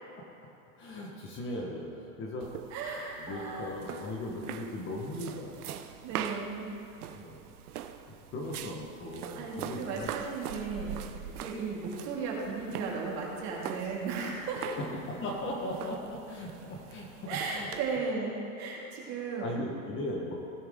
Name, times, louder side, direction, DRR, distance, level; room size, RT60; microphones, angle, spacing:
voice 1, 0.8-2.5 2.8-5.8 7.1-7.4 8.3-10.2 11.2-11.5 14.8-17.7 19.0-19.1 19.4-20.3, left 1 dB, 25° left, -1 dB, 1.4 m, -38 dB
sound 1, 2.4-18.0, right 9 dB, 90° right, 0.8 m, -43 dB
voice 2, 2.7-3.8 6.0-6.7 9.4-11.0 11.4-14.8 17.3-18.3 18.6-19.6, right 4 dB, 40° right, -3 dB, 2.3 m, -35 dB
17.0 x 5.7 x 3.8 m, 2.8 s
supercardioid pair, 140°, 43 cm